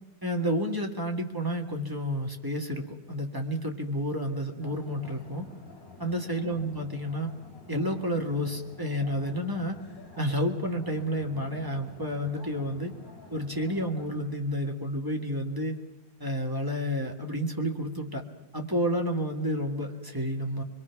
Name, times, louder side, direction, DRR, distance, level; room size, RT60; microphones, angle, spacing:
voice 1, 0.2-5.5 6.0-7.3 7.7-9.8 10.2-12.9 13.3-15.8 16.2-18.2 18.5-20.6, equal, 10° right, 2 dB, 1.7 m, -30 dB
sound 1, 4.6-14.4, left 2 dB, 45° left, 4.3 m, -50 dB
24.5 x 22.5 x 6.0 m, 1.0 s
omnidirectional pair, 2.1 m